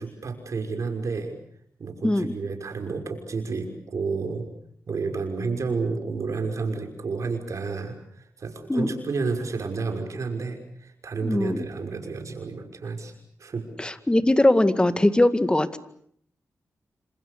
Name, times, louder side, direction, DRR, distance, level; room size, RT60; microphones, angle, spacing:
voice 1, 0.0-1.3 1.8-4.5 4.9-13.1 13.4-13.7, right 4 dB, 65° right, 5 dB, 6.0 m, -30 dB
voice 2, 11.2-11.6 13.8-15.8, left 1 dB, 15° left, 11 dB, 2.0 m, -21 dB
28.5 x 27.0 x 6.8 m, 0.65 s
cardioid pair, 65°, 6 cm